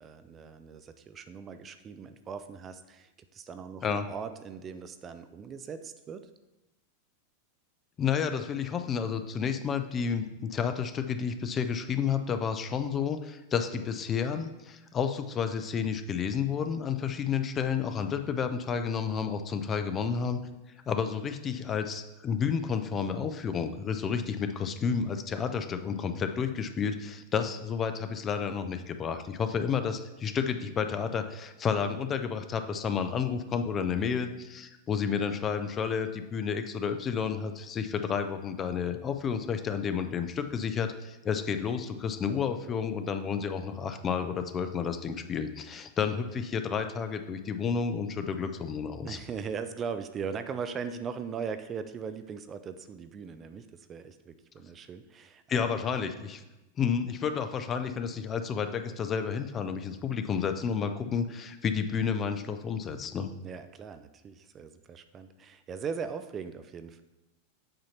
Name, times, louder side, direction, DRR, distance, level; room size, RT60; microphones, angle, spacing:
voice 1, 0.0-6.3 49.0-55.7 63.4-67.0, right 6 dB, 30° right, 11 dB, 0.4 m, -39 dB
voice 2, 8.0-20.4 20.9-49.2 55.5-56.4 56.8-63.3, left 6 dB, 30° left, 9 dB, 0.5 m, -31 dB
7.6 x 2.9 x 5.7 m, 1.0 s
figure-of-eight pair, 90°, 0 cm